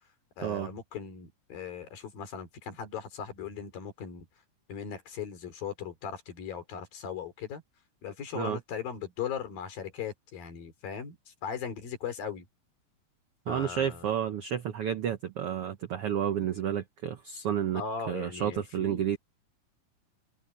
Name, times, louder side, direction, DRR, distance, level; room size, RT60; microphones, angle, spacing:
voice 1, 0.4-4.3 4.7-7.6 8.0-12.5 13.5-14.1 17.7-19.0, left 7 dB, 85° left, 5.3 m, -38 dB
voice 2, 13.5-17.8 18.1-19.2, right 9 dB, 85° right, 1.3 m, -31 dB
open air
omnidirectional pair, 4.0 m